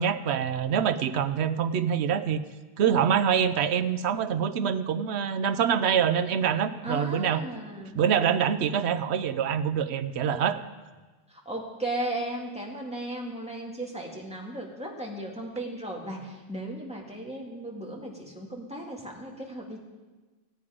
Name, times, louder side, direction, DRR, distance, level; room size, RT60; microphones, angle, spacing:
voice 1, 0.0-2.4 2.8-7.4 7.9-10.6, right 8 dB, 80° right, 11 dB, 0.9 m, -25 dB
voice 2, 6.8-8.0 11.3-19.8, right 1 dB, 5° right, -2 dB, 1.9 m, -36 dB
17.5 x 8.5 x 5.0 m, 1.3 s
omnidirectional pair, 1.1 m